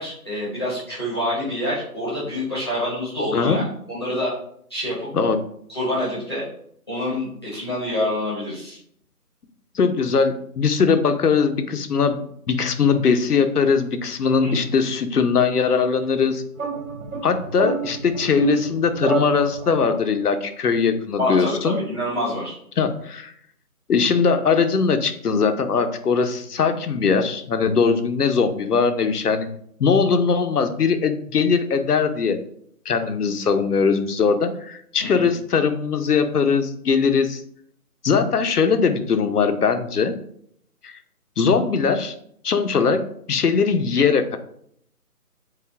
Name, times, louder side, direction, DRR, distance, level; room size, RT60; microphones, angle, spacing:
voice 1, 0.0-4.3 4.7-5.1 5.7-6.5 6.9-8.8 14.4-14.6 21.2-22.5 35.0-35.2, left 1 dB, 15° left, -8 dB, 0.9 m, -26 dB
voice 2, 9.7-12.2 12.5-16.4 17.2-21.8 22.8-23.3 23.9-29.5 29.8-32.4 32.9-37.4 38.0-40.1 40.8-40.9 41.4-42.1 42.4-44.4, left 5 dB, 75° left, 8 dB, 0.8 m, -20 dB
sound 1, 16.6-20.0, right 5 dB, 55° right, 1.1 m, -28 dB
4.7 x 2.5 x 3.5 m, 0.66 s
figure-of-eight pair, 160°, 46 cm